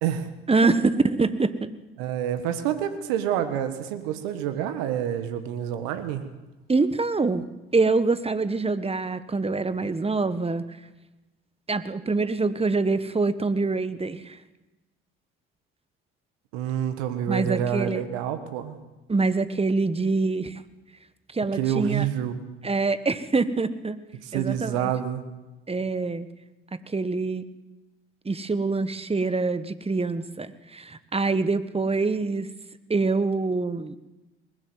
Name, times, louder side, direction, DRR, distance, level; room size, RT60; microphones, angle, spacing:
voice 1, 0.5-1.7 6.7-7.5 7.7-10.6 11.7-14.4 17.3-18.0 19.1-20.6 21.3-22.1 22.6-24.0 24.3-24.9 25.7-26.3 26.7-27.4 28.2-32.5 32.9-34.0, right 3 dB, 20° right, 13 dB, 1.4 m, -25 dB
voice 2, 2.0-6.2 16.5-18.8 21.5-22.4 24.2-25.2, right 10 dB, 75° right, 9 dB, 1.6 m, -28 dB
20.5 x 13.5 x 9.5 m, 1.1 s
hypercardioid pair, 50°, 31 cm